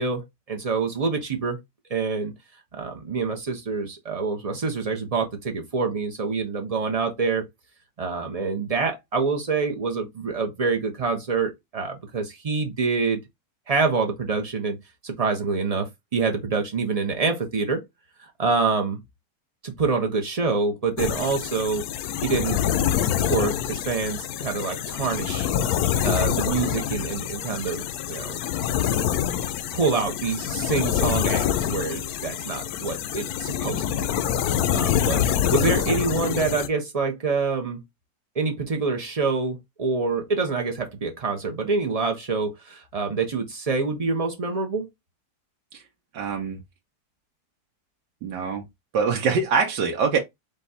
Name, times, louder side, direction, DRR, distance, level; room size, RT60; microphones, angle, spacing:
voice 1, 0.0-1.6 1.9-2.3 2.7-7.5 8.0-13.2 13.7-14.8 15.0-17.8 18.4-19.0 19.6-21.9 22.2-22.6 23.3-25.5 26.0-28.4 29.7-34.1 34.7-37.8 38.3-44.9, right 4 dB, 60° right, 0.4 m, -26 dB
sound 1, 21.0-36.7, left 10 dB, 70° left, 1.0 m, -26 dB
voice 2, 46.1-46.6 48.2-48.7 48.9-50.2, right 5 dB, 90° right, 1.4 m, -24 dB
5.0 x 2.3 x 4.0 m
omnidirectional pair, 1.8 m